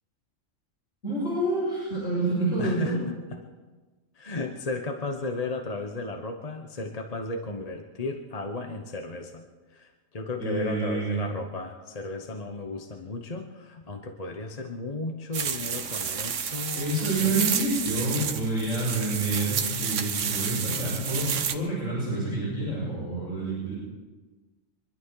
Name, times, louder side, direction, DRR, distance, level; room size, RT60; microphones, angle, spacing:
voice 1, 1.0-2.9 10.4-11.2 16.7-23.7, right 2 dB, 70° left, -10 dB, 7.8 m, -28 dB
voice 2, 2.6-3.5 4.1-17.5, left 3 dB, 30° left, 3 dB, 1.1 m, -35 dB
sound 1, 15.3-21.6, right 7 dB, 70° right, 1.2 m, -30 dB
25.5 x 11.5 x 4.9 m, 1.3 s
omnidirectional pair, 1.4 m